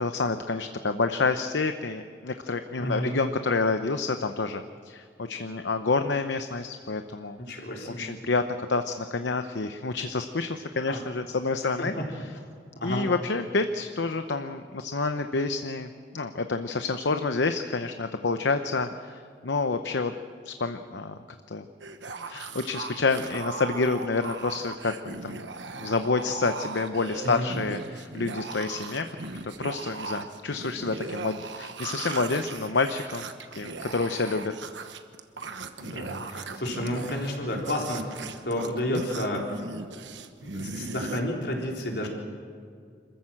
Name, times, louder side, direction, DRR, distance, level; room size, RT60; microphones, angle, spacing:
voice 1, 0.0-7.4 8.0-11.9 12.8-20.1 20.4-21.2 21.5-21.7 22.3-25.4 25.8-33.3 33.5-34.5, left 3 dB, 80° left, 8 dB, 0.8 m, -28 dB
voice 2, 2.8-3.1 7.4-8.1 10.8-11.0 11.8-12.0 12.8-13.0 27.2-27.5 35.8-38.1 38.4-39.6 40.4-42.1, left 1 dB, 65° left, 0 dB, 3.9 m, -31 dB
sound 1, 21.8-41.2, right 4 dB, 85° right, 1.2 m, -38 dB
26.5 x 14.5 x 7.7 m, 2.2 s
head